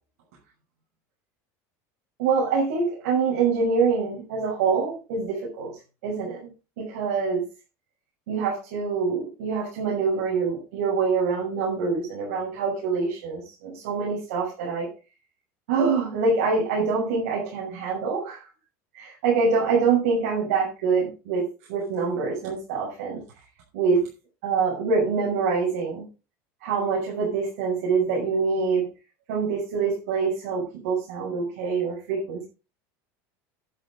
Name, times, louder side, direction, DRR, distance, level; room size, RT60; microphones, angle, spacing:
voice 1, 2.2-5.7 6.0-6.4 6.8-7.4 8.3-14.9 15.7-18.4 18.9-23.2 23.7-24.0 24.4-26.0 26.6-28.9 29.3-32.4, right 5 dB, 85° right, -3 dB, 6.3 m, -25 dB
11.0 x 11.0 x 3.8 m, 0.31 s
cardioid pair, 175°, 8 cm